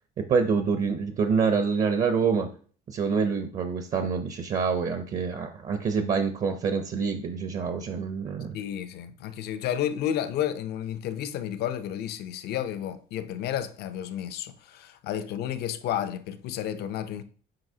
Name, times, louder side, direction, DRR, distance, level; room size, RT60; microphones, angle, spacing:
voice 1, 0.2-2.5 2.9-8.6, right 5 dB, 50° right, 0.7 m, -26 dB
voice 2, 8.5-17.2, left 10 dB, 75° left, 0.6 m, -31 dB
7.8 x 4.7 x 2.8 m
cardioid pair, 110°, 17 cm